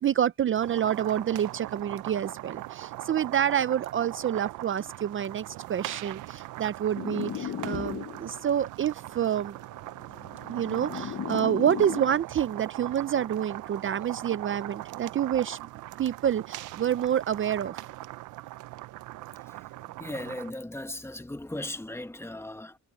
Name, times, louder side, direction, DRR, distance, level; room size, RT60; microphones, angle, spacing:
voice 1, 0.0-9.6 10.5-15.6 16.0-17.8, right 9 dB, 40° right, 0.6 m, -28 dB
sound 1, 0.6-20.5, right 17 dB, 90° right, 0.6 m, -40 dB
sound 2, 6.9-8.5 9.5-12.2, left 9 dB, 55° left, 1.2 m, -36 dB
voice 2, 19.8-22.8, left 1 dB, 10° left, 1.3 m, -37 dB
cardioid pair, 90°, 30 cm